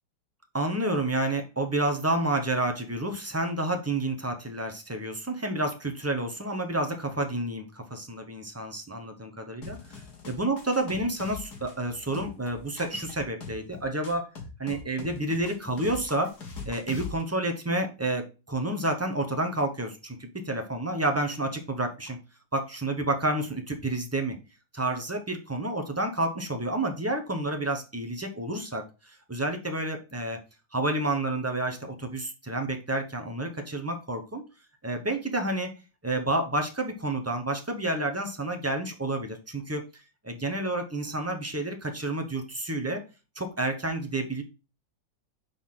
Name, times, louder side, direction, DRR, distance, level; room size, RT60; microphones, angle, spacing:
voice 1, 0.5-14.3 14.6-16.3 16.7-22.2 22.5-24.4 24.7-30.4 30.7-34.4 34.8-35.7 36.0-39.8 40.2-43.0 43.4-44.4, right 2 dB, 15° right, 4 dB, 0.6 m, -30 dB
sound 1, 9.6-17.2, left 4 dB, 60° left, 2.3 m, -42 dB
7.0 x 4.2 x 3.7 m, 0.30 s
omnidirectional pair, 2.0 m